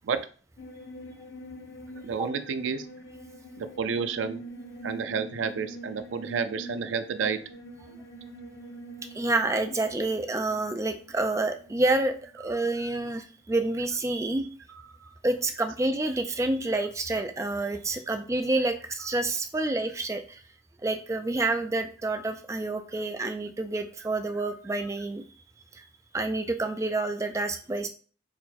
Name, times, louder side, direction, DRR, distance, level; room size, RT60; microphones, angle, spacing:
sound 1, 0.6-12.5 12.8-12.9, right 2 dB, 65° left, 0.6 m, -44 dB
voice 1, 2.0-2.9 3.6-4.4 4.8-7.4 12.4-12.9 14.7-15.2 17.1-17.2 19.0-19.2 21.5-21.7 23.2-23.3, right 6 dB, 85° right, 10 dB, 0.4 m, -31 dB
voice 2, 9.1-14.5 15.2-20.4 20.8-25.2 25.7-25.8 26.1-27.9, right 2 dB, 15° right, 7 dB, 0.3 m, -28 dB
4.4 x 2.1 x 4.1 m, 0.40 s
head